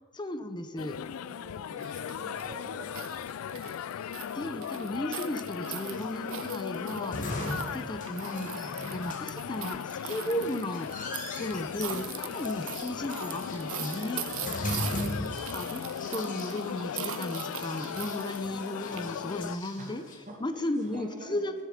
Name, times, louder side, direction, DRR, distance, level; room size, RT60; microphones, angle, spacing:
voice 1, 0.1-1.0 4.3-7.4 7.7-14.2 15.2-20.0 20.4-21.6, left 1 dB, 20° left, 9 dB, 0.7 m, -35 dB
sound 1, 0.8-19.6, left 8 dB, 70° left, 0.3 m, -37 dB
voice 2, 1.2-3.6 7.5-7.8 14.3-15.1 19.8-21.6, equal, 35° right, -1 dB, 2.1 m, -47 dB
sound 2, 1.8-19.4, right 10 dB, 65° right, 0.7 m, -42 dB
sound 3, 5.9-20.2, left 1 dB, 40° left, 1.8 m, -40 dB
18.0 x 6.8 x 5.2 m, 1.5 s
head